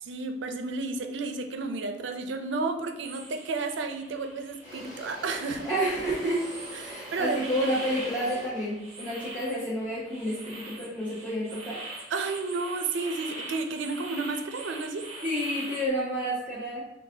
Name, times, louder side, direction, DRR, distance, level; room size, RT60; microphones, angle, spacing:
voice 1, 0.0-5.7 6.8-7.7 12.1-15.0, right 3 dB, 75° right, 6 dB, 0.4 m, -32 dB
sound 1, 3.0-15.9, right 2 dB, 35° right, 0.6 m, -43 dB
Engine / Drill, 3.7-3.9 4.2-10.4, equal, 40° left, 0.9 m, -44 dB
voice 2, 5.6-6.4 6.8-11.8 15.2-16.8, equal, 10° left, -10 dB, 0.8 m, -30 dB
3.8 x 2.5 x 2.7 m, 0.91 s
head